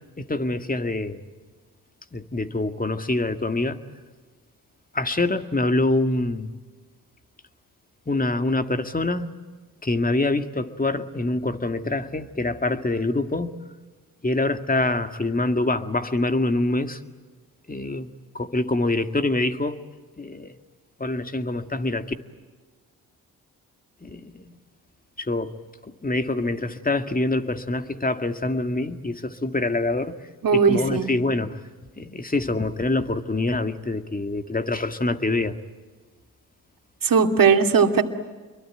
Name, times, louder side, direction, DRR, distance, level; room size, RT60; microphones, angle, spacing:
voice 1, 0.2-1.2 2.1-3.8 4.9-6.5 8.1-9.3 9.8-13.6 14.2-17.0 17.7-18.1 18.3-19.8 20.2-20.6 21.0-22.1 24.0-24.4 25.2-25.5 25.9-30.1 30.5-31.6 32.0-35.5, left 2 dB, 25° left, 8 dB, 2.1 m, -25 dB
voice 2, 30.4-31.1 37.0-38.0, right 6 dB, 60° right, 5 dB, 2.5 m, -18 dB
27.5 x 23.0 x 9.0 m, 1.4 s
supercardioid pair, 50°, 38 cm